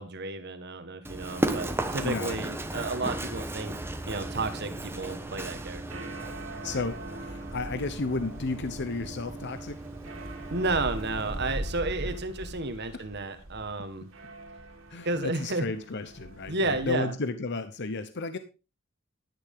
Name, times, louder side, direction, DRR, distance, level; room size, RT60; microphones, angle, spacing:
voice 1, 0.0-3.7 4.1-6.1 10.5-14.1 15.0-15.7 16.5-17.1, right 2 dB, 55° right, 9 dB, 1.6 m, -32 dB
Run, 1.0-11.6, right 1 dB, 10° right, 1.1 m, -36 dB
voice 2, 2.0-2.4 6.6-9.8 12.8-13.0 14.9-18.4, left 3 dB, 60° left, 10 dB, 0.9 m, -33 dB
sound 1, 4.0-16.9, right 1 dB, 70° right, 2.6 m, -42 dB
11.5 x 10.5 x 3.7 m, 0.30 s
head